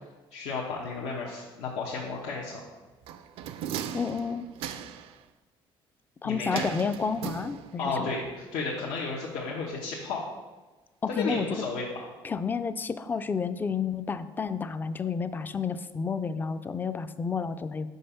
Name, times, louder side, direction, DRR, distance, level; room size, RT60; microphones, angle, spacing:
voice 1, 0.3-2.6 6.2-6.7 7.8-10.2 11.1-12.1, left 4 dB, 90° left, -5 dB, 1.1 m, -33 dB
sound 1, 3.1-5.2 6.5-8.0 8.3-8.4, right 9 dB, 75° right, 0.4 m, -37 dB
voice 2, 3.9-4.8 6.2-8.1 11.0-11.6 12.2-17.9, left 5 dB, 20° left, 12 dB, 0.3 m, -31 dB
5.4 x 5.2 x 5.6 m, 1.2 s
cardioid pair, 135°, 10 cm